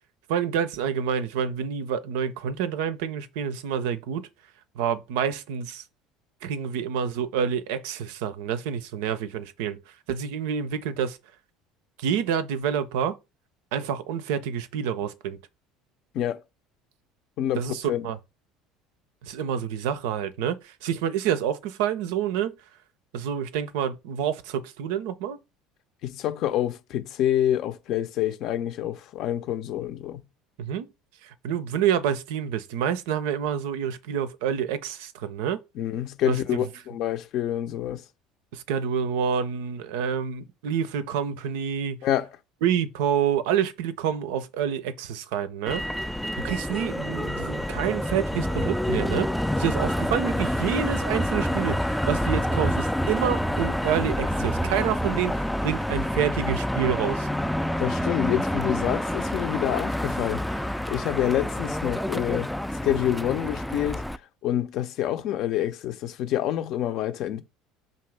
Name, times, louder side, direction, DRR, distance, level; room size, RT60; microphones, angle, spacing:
voice 1, 0.3-4.2 4.8-5.8 6.4-9.8 10.1-11.2 12.0-13.2 13.7-15.4 17.6-18.2 19.2-22.6 23.1-25.4 30.6-30.9 31.2-35.6 36.3-36.4 38.5-42.0 42.6-45.8 46.4-49.3 49.6-57.3, right 8 dB, 70° right, 0.5 m, -28 dB
voice 2, 17.4-18.1 26.0-30.2 35.8-38.0 42.0-42.3 57.8-60.4 60.9-62.5 62.8-64.0 64.4-67.4, left 11 dB, 55° left, 0.5 m, -27 dB
Motor vehicle (road), 45.7-64.2, equal, 5° left, 0.3 m, -27 dB
5.3 x 2.5 x 3.3 m
hypercardioid pair, 65°, 0 cm